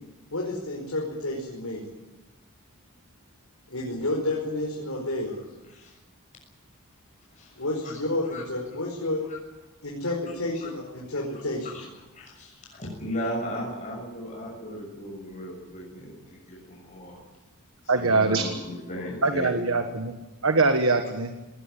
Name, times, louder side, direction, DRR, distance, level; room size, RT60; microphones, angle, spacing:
voice 1, 0.3-1.8 3.7-5.4 7.6-9.2 9.8-11.7, left 1 dB, 75° left, -2 dB, 5.3 m, -30 dB
voice 2, 7.3-8.0 8.3-8.4 9.3-9.4 10.6-10.7 11.6-11.8 12.1-17.2 17.8-19.9, equal, 35° left, -2 dB, 6.8 m, -36 dB
voice 3, 17.9-18.4 19.2-20.2 20.4-21.3, right 3 dB, 65° right, 7 dB, 1.5 m, -23 dB
20.0 x 19.5 x 9.9 m, 1.1 s
head